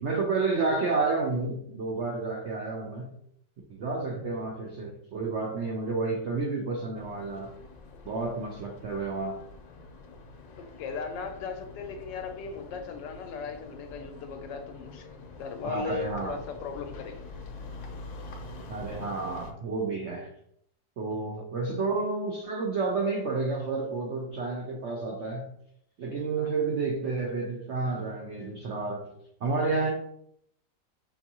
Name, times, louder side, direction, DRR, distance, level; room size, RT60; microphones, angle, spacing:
voice 1, 0.0-3.1 3.7-7.5 8.0-9.4 15.6-16.4 18.7-20.3 21.0-25.5 26.0-29.1 29.4-29.9, right 3 dB, 90° right, 1 dB, 0.6 m, -30 dB
sound 1, 7.0-19.5, left 3 dB, 65° left, 1.1 m, -46 dB
voice 2, 10.6-15.0 15.4-17.2 21.4-21.5 26.4-26.5, left 5 dB, 80° left, 5 dB, 1.3 m, -37 dB
6.1 x 2.6 x 2.8 m, 0.71 s
omnidirectional pair, 1.9 m